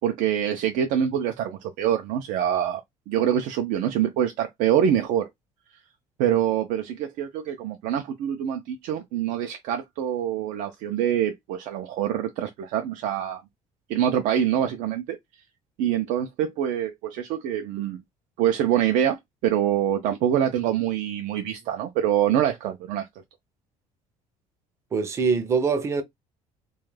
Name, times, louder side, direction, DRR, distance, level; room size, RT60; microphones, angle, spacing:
voice 1, 0.0-2.8 3.1-5.3 6.2-13.4 13.9-15.2 15.8-18.0 18.4-23.1, right 10 dB, 85° right, 0.4 m, -25 dB
voice 2, 24.9-26.0, right 5 dB, 20° right, 0.4 m, -23 dB
2.3 x 2.1 x 3.1 m
cardioid pair, 175°, 13 cm